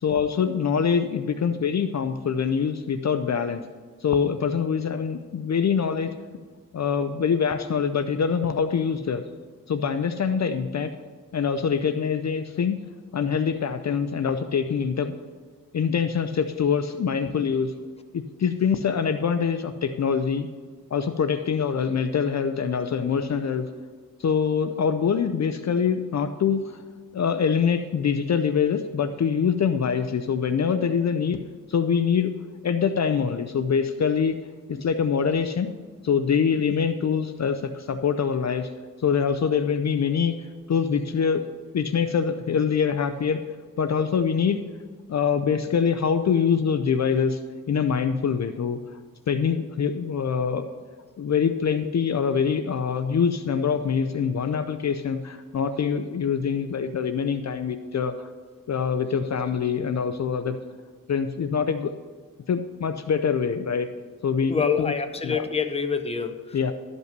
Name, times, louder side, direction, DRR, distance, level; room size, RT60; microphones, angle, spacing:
voice 1, 0.0-3.6 4.0-6.1 6.7-9.2 9.7-10.9 11.3-12.8 13.1-15.2 15.7-17.7 18.1-20.5 20.9-23.7 24.2-26.8 27.1-31.4 31.7-32.3 32.6-34.4 34.7-35.7 36.0-38.7 39.0-41.4 41.7-43.4 43.8-44.6 45.1-47.4 47.7-49.0 49.3-50.7 51.2-58.3 58.7-60.6 61.1-61.9 62.5-63.9 64.2-64.9 65.2-65.4 66.5-66.7, left 6 dB, 50° left, 8 dB, 0.5 m, -24 dB
voice 2, 64.5-66.6, left 6 dB, 20° left, 6 dB, 0.7 m, -26 dB
12.0 x 5.4 x 6.6 m, 1.5 s
wide cardioid pair, 110°, 34 cm